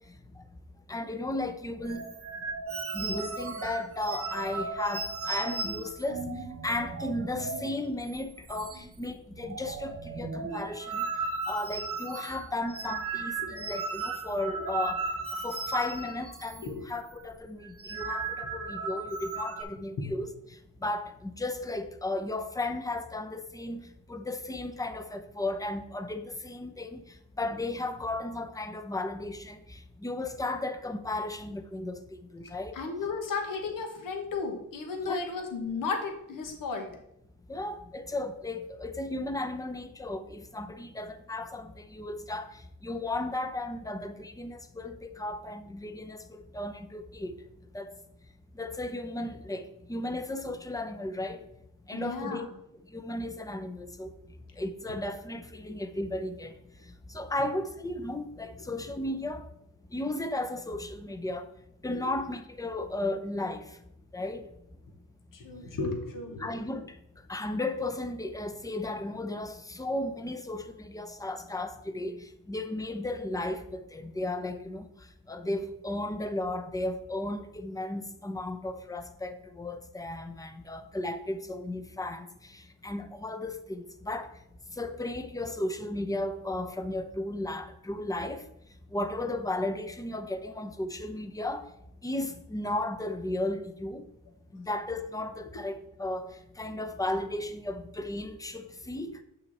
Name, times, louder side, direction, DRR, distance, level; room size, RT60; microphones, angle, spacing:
voice 1, 0.9-2.1 2.9-6.3 6.6-11.1 11.5-15.0 15.4-20.3 20.8-27.0 27.4-32.8 35.0-35.2 37.5-47.4 47.7-48.0 48.5-51.4 51.9-52.5 52.9-54.1 54.6-56.5 57.1-59.5 59.9-61.5 61.8-63.7 64.1-64.5 66.4-67.0 67.3-74.8 75.3-84.3 84.8-88.4 88.9-91.6 92.0-94.0 94.5-99.1, left 2 dB, 10° left, 0.7 m, -35 dB
sound 1, 1.8-7.8 8.1-8.2 8.5-9.1 9.3-16.7 16.9-17.2 17.6-19.6, right 4 dB, 40° right, 1.0 m, -36 dB
voice 2, 32.7-36.9 51.9-52.4 61.9-62.0 65.3-66.5, left 4 dB, 70° left, 1.5 m, -34 dB
7.9 x 5.7 x 4.2 m
cardioid pair, 100°, 34 cm